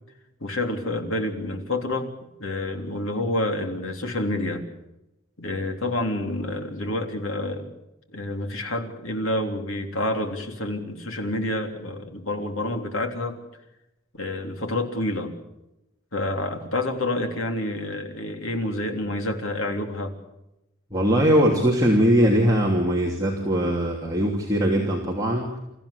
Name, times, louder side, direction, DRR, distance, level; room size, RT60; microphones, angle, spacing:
voice 1, 0.4-2.1 2.4-4.7 5.4-7.7 8.1-13.4 14.1-15.3 16.1-20.2, left 1 dB, 75° left, 4 dB, 3.5 m, -28 dB
voice 2, 20.9-25.6, equal, 15° right, -3 dB, 3.1 m, -21 dB
29.0 x 15.0 x 8.5 m, 0.91 s
head